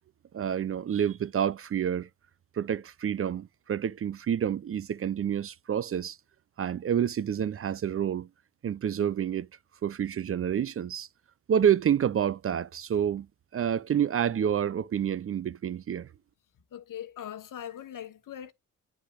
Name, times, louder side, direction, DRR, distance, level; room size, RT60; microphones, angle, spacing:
voice 1, 0.3-2.1 2.5-6.2 6.6-8.3 8.6-9.5 9.8-11.1 11.5-13.3 13.5-16.1, right 9 dB, 45° right, 0.4 m, -28 dB
voice 2, 16.5-18.5, left 10 dB, 75° left, 1.1 m, -41 dB
9.8 x 5.6 x 2.4 m
cardioid pair, 60°, 33 cm